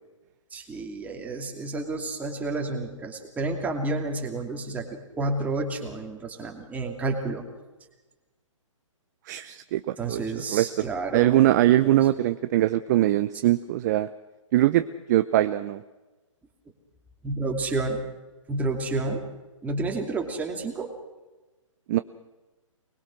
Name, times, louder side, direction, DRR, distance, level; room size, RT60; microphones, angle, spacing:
voice 1, 0.5-7.4 10.0-11.4 11.8-12.1 17.2-18.0 18.5-19.3 19.6-20.9, right 3 dB, 10° right, 1 dB, 2.7 m, -30 dB
voice 2, 9.3-10.7 11.1-14.1 14.5-15.8 21.9-22.0, right 14 dB, 35° right, 12 dB, 0.6 m, -22 dB
24.0 x 21.0 x 6.3 m, 1.2 s
figure-of-eight pair, 135°, 17 cm